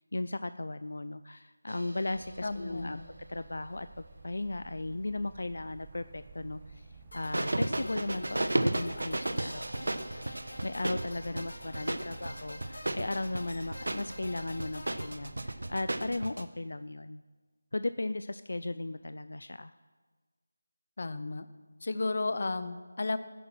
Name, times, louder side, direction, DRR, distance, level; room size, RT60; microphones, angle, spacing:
voice 1, 0.1-3.0 3.3-3.9 4.2-6.9 7.1-10.4 10.6-17.2 17.7-19.7, left 2 dB, 65° left, 12 dB, 0.5 m, -36 dB
sound 1, 1.7-3.1 7.3-16.4, right 1 dB, 85° right, 1.2 m, -34 dB
sound 2, 2.1-16.3, right 3 dB, 10° right, 0.9 m, -52 dB
voice 2, 2.4-3.1 21.0-21.5 21.8-23.2, left 3 dB, 40° left, 13 dB, 0.8 m, -33 dB
sound 3, 7.1-15.1, left 1 dB, 85° left, 2.5 m, -47 dB
17.0 x 10.0 x 6.2 m, 1.4 s
figure-of-eight pair, 180°, 0 cm